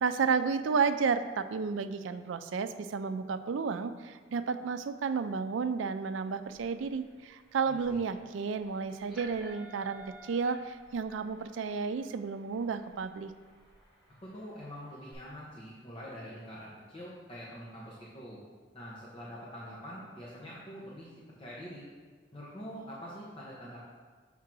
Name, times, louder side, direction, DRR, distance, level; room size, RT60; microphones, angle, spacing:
voice 1, 0.0-13.3, right 5 dB, 85° right, 11 dB, 0.4 m, -32 dB
sound 1, 6.4-15.1, right 1 dB, ahead, 1.3 m, -56 dB
voice 2, 7.7-8.0 14.2-18.4 18.7-21.1 21.4-21.9 22.3-23.8, equal, 30° left, -6 dB, 0.9 m, -45 dB
5.9 x 3.7 x 6.0 m, 1.5 s
head